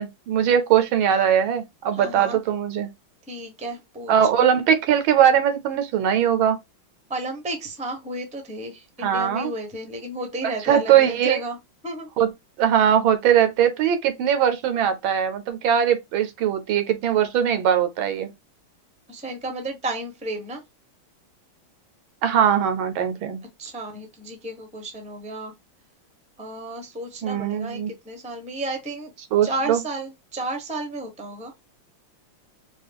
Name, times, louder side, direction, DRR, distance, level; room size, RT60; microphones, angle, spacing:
voice 1, 0.0-2.9 4.1-6.6 9.0-9.5 10.7-11.4 12.2-12.3 12.6-18.3 22.2-23.4 27.2-27.9 29.3-29.8, right 9 dB, 80° right, 1.5 m, -20 dB
voice 2, 1.9-2.4 3.3-4.5 7.1-11.6 11.8-12.1 19.1-20.6 23.6-25.5 26.4-27.8 28.0-29.1 29.4-31.5, right 2 dB, 5° right, 0.7 m, -32 dB
4.8 x 2.4 x 3.5 m
omnidirectional pair, 2.2 m